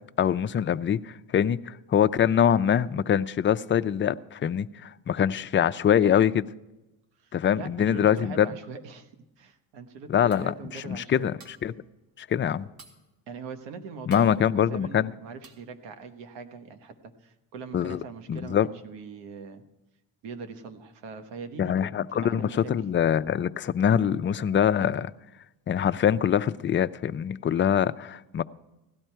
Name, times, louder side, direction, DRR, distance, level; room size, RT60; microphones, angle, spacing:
voice 1, 0.2-6.4 7.3-8.5 10.1-11.7 12.2-12.7 14.1-15.1 17.7-18.0 18.3-18.7 21.6-25.1 25.7-28.4, left 9 dB, 30° left, 0.5 m, -24 dB
voice 2, 7.2-11.3 13.3-19.6 20.2-21.9 22.2-22.7, right 4 dB, 85° right, 1.4 m, -42 dB
sound 1, 10.3-10.7 11.2-11.8 12.1-12.2 12.5-13.2 13.6-13.7 14.1-14.4 14.8-15.0 15.4-15.7, right 3 dB, 55° right, 2.2 m, -53 dB
16.5 x 12.0 x 4.6 m
cardioid pair, 85°, 41 cm